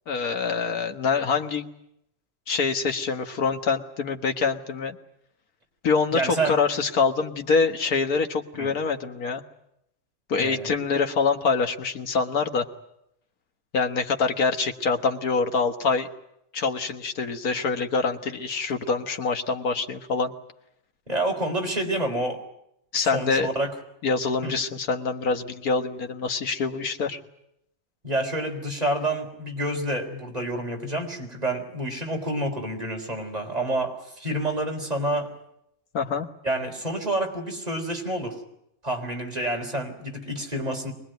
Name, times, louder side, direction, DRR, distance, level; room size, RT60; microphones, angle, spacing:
voice 1, 0.1-1.6 2.5-5.0 5.8-9.4 10.3-12.7 13.7-16.1 16.5-20.3 22.9-23.5 24.0-27.2 35.9-36.3, left 4 dB, 80° left, 6 dB, 2.0 m, -25 dB
voice 2, 6.1-6.6 8.6-8.7 10.4-10.7 21.1-22.4 23.1-23.7 24.4-24.5 28.0-35.3 36.4-38.4 38.8-40.9, right 1 dB, 25° right, 1 dB, 4.0 m, -28 dB
24.0 x 20.0 x 9.2 m, 0.79 s
omnidirectional pair, 1.5 m